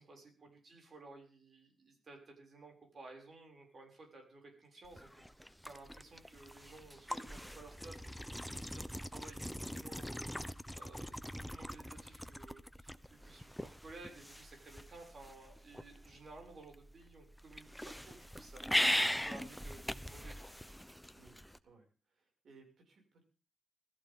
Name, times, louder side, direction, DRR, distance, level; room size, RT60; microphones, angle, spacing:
voice 1, 0.0-18.6 19.0-20.4, right 3 dB, 40° right, 2 dB, 6.7 m, -56 dB
sound 1, 4.8-21.6, equal, ahead, 0.8 m, -41 dB
voice 2, 21.1-23.2, right 4 dB, 65° right, 2 dB, 6.4 m, -63 dB
20.5 x 14.5 x 3.8 m, 0.36 s
wide cardioid pair, 150°, 0 cm